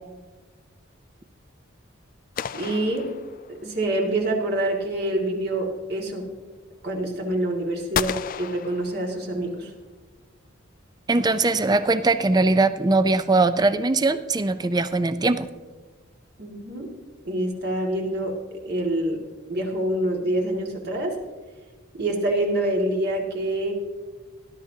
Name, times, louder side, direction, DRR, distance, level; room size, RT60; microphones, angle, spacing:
sound 1, 2.4-3.8 7.9-9.5, left 8 dB, 45° left, 0.3 m, -32 dB
voice 1, 2.5-3.1 3.5-6.3 6.8-9.7 16.4-16.9 17.3-18.4 18.7-19.2 19.5-21.2 22.0-23.7, right 1 dB, 55° right, 0 dB, 2.1 m, -26 dB
voice 2, 11.1-15.5, right 3 dB, 20° right, 12 dB, 0.4 m, -21 dB
19.0 x 11.5 x 2.8 m, 1.3 s
head